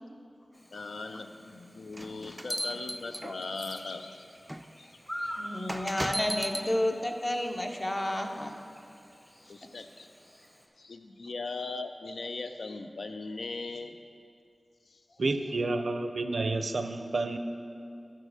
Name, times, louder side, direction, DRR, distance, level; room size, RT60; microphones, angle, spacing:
Chirp tweet / Buzz, 0.5-10.7, equal, 25° left, 1.2 m, -47 dB
voice 1, 0.7-4.2 4.8-5.7 9.5-10.1 10.8-14.0 14.9-15.2, left 3 dB, 90° left, 7 dB, 0.4 m, -39 dB
sound 1, 1.9-3.7 4.5-4.6 5.7-6.7, equal, 10° right, 0.3 m, -35 dB
voice 2, 5.4-8.5, left 1 dB, 40° left, 3 dB, 0.8 m, -31 dB
voice 3, 15.2-17.4, right 3 dB, 80° right, 8 dB, 0.5 m, -30 dB
11.5 x 4.3 x 4.9 m, 2.4 s
cardioid pair, 45°, 0 cm